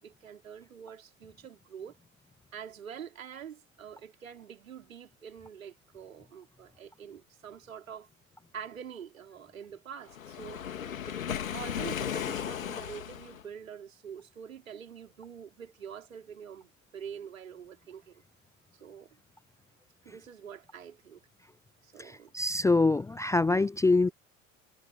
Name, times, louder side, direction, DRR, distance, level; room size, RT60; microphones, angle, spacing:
voice 1, 0.0-2.0 2.5-8.1 8.5-10.7 11.1-18.2 18.7-19.2 20.0-21.2 21.8-22.3, right 8 dB, 80° right, 3.5 m, -46 dB
Waves surf, 10.1-13.4, left 9 dB, 80° left, 3.1 m, -35 dB
voice 2, 22.3-24.1, left 3 dB, 10° left, 0.5 m, -24 dB
figure-of-eight pair, 75°, 40 cm